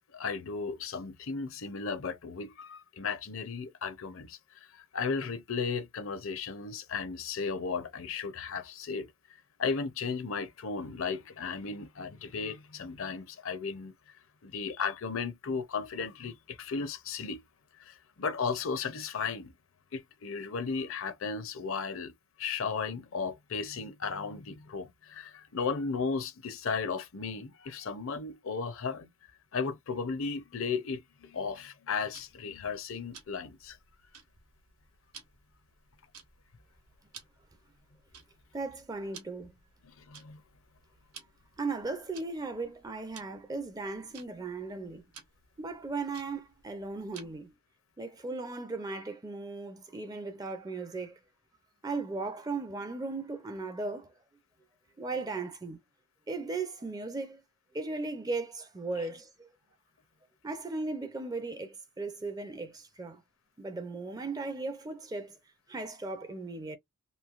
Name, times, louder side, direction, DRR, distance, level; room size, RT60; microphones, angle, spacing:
voice 1, 0.1-9.1 9.6-13.9 14.4-17.4 17.8-19.5 19.9-22.1 22.4-29.1 29.5-33.8 40.0-40.4, left 5 dB, 65° left, 0.5 m, -35 dB
Tick-tock, 32.1-47.6, right 7 dB, 90° right, 1.0 m, -56 dB
voice 2, 38.5-39.5 41.6-45.1 45.6-47.5 48.0-51.2 51.8-54.1 55.0-55.8 56.3-57.4 57.7-59.5 60.4-63.2 63.6-65.4 65.7-66.8, right 3 dB, 15° right, 0.4 m, -37 dB
3.1 x 2.7 x 2.4 m
head